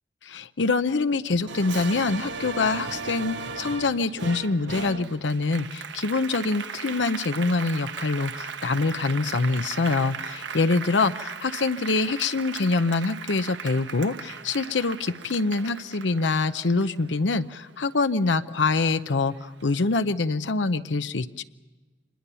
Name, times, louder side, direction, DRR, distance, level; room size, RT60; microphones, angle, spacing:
voice 1, 0.3-21.4, left 3 dB, 85° left, 11 dB, 0.7 m, -25 dB
Applause, 1.5-18.3 18.7-19.8, right 5 dB, 85° right, 1.0 m, -37 dB
26.0 x 20.5 x 7.0 m, 1.3 s
head